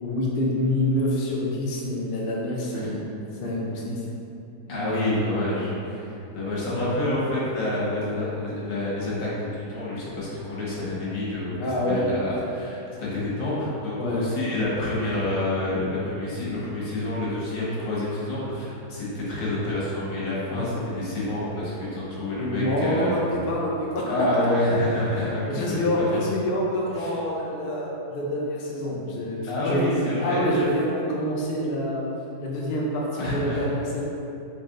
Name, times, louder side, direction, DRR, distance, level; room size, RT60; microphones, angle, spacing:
voice 1, 0.0-4.0 4.6-5.0 11.5-12.4 13.9-14.3 20.5-20.8 22.1-24.3 25.1-29.9 30.2-32.0 32.4-34.0, left 1 dB, 55° left, -4 dB, 0.6 m, -27 dB
voice 2, 4.7-11.6 11.9-23.2 24.1-26.2 26.9-27.2 29.5-30.5 33.2-33.7, left 1 dB, 80° left, -8 dB, 1.8 m, -28 dB
4.1 x 3.3 x 3.7 m, 2.8 s
omnidirectional pair, 1.9 m